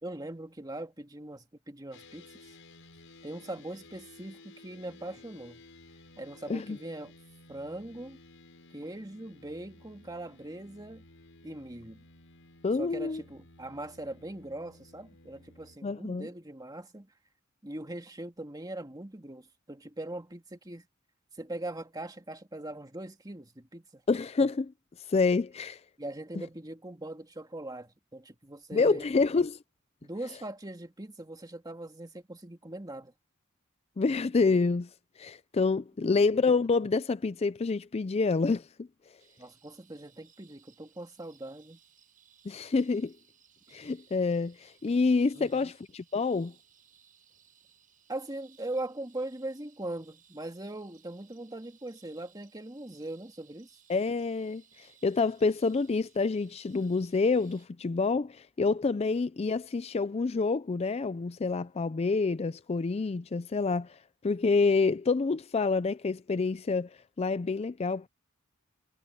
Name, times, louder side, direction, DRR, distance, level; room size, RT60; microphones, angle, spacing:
voice 1, 0.0-2.5 3.2-5.6 6.2-7.2 7.5-8.2 8.7-11.0 11.4-12.0 12.8-17.1 17.6-20.9 21.4-24.0 26.0-29.1 30.0-33.1 36.0-36.2 39.4-41.8 45.3-45.7 48.1-53.8, right 1 dB, 20° right, 2.0 m, -41 dB
sound 1, 1.9-15.8, left 2 dB, 65° left, 6.9 m, -55 dB
voice 2, 12.6-13.2 15.8-16.3 24.1-24.7 25.1-25.8 28.7-29.6 34.0-34.9 35.2-38.9 42.5-43.1 43.7-46.5 53.9-64.0 64.2-66.9 67.2-68.1, left 4 dB, 30° left, 0.4 m, -27 dB
sound 2, 39.2-57.7, right 8 dB, 40° right, 7.6 m, -63 dB
head